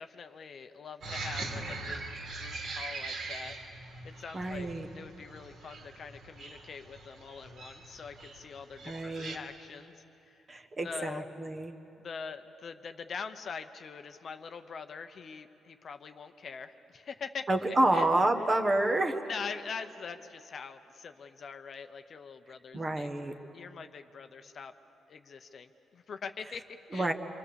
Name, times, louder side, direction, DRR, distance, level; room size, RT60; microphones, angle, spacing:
voice 1, 0.0-3.6 4.0-4.7 4.9-10.4 10.8-11.4 12.0-18.1 19.3-23.1 23.5-24.7 25.1-27.1, left 5 dB, 45° left, 8 dB, 0.8 m, -43 dB
sound 1, 1.0-9.4, right 3 dB, 60° right, 2.8 m, -42 dB
voice 2, 4.3-4.9 8.8-9.3 10.5-11.7 17.5-19.2 22.7-23.3 26.9-27.1, right 2 dB, 25° right, 5 dB, 1.3 m, -28 dB
27.5 x 24.0 x 7.0 m, 3.0 s
cardioid pair, 145°, 0 cm